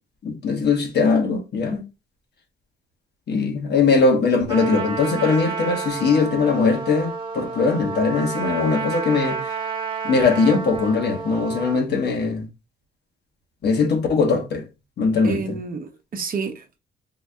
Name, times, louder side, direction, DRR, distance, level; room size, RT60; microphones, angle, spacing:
voice 1, 0.2-1.8 3.3-9.4 10.0-12.5 13.6-14.6 15.0-15.6, left 4 dB, 55° left, 1.1 m, -20 dB
Trumpet, 4.5-11.8, right 6 dB, 25° right, 1.0 m, -30 dB
voice 2, 15.2-16.8, right 5 dB, 45° right, 0.7 m, -30 dB
4.0 x 2.6 x 2.2 m
cardioid pair, 90°, 20 cm